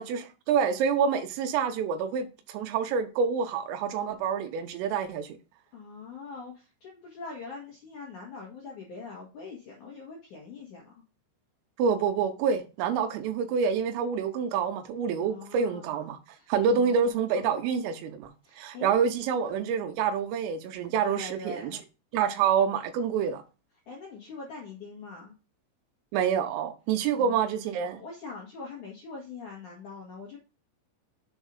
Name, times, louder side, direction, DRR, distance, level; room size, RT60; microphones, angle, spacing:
voice 1, 0.0-5.3 11.8-16.2 16.5-21.8 22.1-23.4 26.1-28.0, right 6 dB, 85° right, 3.4 m, -27 dB
voice 2, 5.7-10.9 15.1-15.9 16.3-17.7 18.4-19.0 21.0-21.8 23.9-25.3 27.1-27.5 27.9-30.4, left 4 dB, 75° left, 1.8 m, -43 dB
7.3 x 4.5 x 5.3 m
omnidirectional pair, 5.9 m